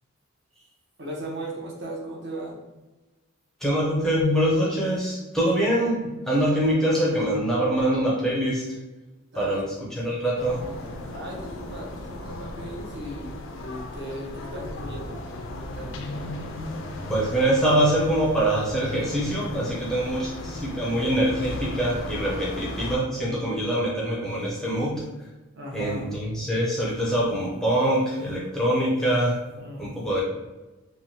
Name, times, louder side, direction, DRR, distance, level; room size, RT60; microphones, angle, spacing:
voice 1, 1.0-2.6 9.3-9.6 11.1-15.2 15.5-16.0 25.6-26.1 29.6-30.0, right 1 dB, 55° right, -2 dB, 0.7 m, -37 dB
voice 2, 3.6-8.8 9.3-9.7 9.9-10.6 17.1-25.0 25.7-29.4 29.8-30.2, right 1 dB, ahead, -5 dB, 0.5 m, -24 dB
sound 1, 10.4-23.0, left 1 dB, 60° left, 0.4 m, -36 dB
3.2 x 2.2 x 2.7 m, 1.1 s
head